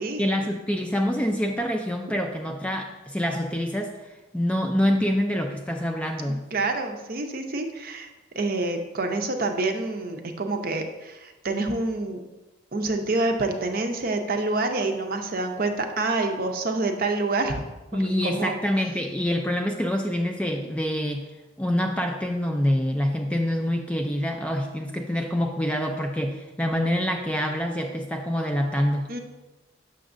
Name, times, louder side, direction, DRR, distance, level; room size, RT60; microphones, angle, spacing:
voice 1, 0.2-3.9 4.3-6.4 17.9-21.3 21.6-29.2, equal, 5° left, 3 dB, 0.3 m, -26 dB
voice 2, 6.5-8.1 8.3-12.2 12.7-17.6 18.0-18.6 29.1-29.2, right 2 dB, 45° right, 5 dB, 0.6 m, -27 dB
6.9 x 6.2 x 2.5 m, 1.1 s
head